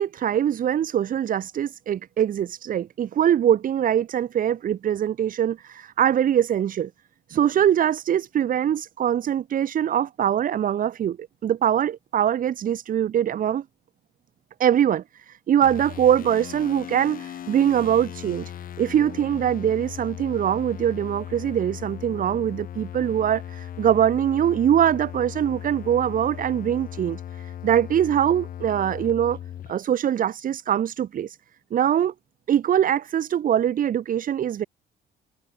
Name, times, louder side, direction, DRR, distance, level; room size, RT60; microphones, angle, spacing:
voice 1, 0.0-6.9 7.3-11.2 11.4-13.6 14.6-18.5 18.8-29.4 29.7-31.4 31.7-32.1 32.5-34.6, right 10 dB, 55° right, 6.7 m, -23 dB
sound 1, 15.6-29.7, left 10 dB, 55° left, 5.8 m, -37 dB
cardioid pair, 110°, 17 cm